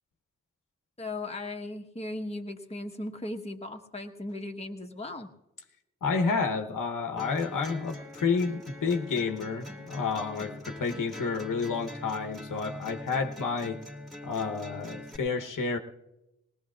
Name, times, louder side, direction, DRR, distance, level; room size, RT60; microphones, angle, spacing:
voice 1, 1.0-5.3, left 2 dB, 20° left, 2 dB, 1.1 m, -37 dB
voice 2, 6.0-13.8 14.2-15.8, left 4 dB, 90° left, 5 dB, 1.0 m, -30 dB
sound 1, 7.2-15.2, left 1 dB, ahead, 1.9 m, -43 dB
20.0 x 19.0 x 2.4 m, 0.93 s
wide cardioid pair, 75°, 31 cm